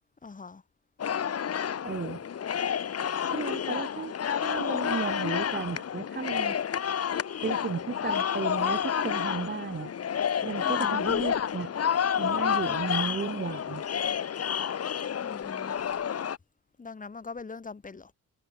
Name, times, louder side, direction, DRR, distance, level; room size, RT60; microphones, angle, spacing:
voice 1, 0.2-0.6 10.6-11.1 15.2-15.7 16.8-18.1, left 4 dB, 25° left, 2.4 m, -42 dB
sound 1, 1.0-16.4, left 8 dB, 50° left, 2.0 m, -30 dB
voice 2, 1.8-2.2 3.3-6.6 7.4-9.9 10.4-11.7 12.2-13.8, right 6 dB, 30° right, 0.9 m, -34 dB
wide cardioid pair, 145°, 32 cm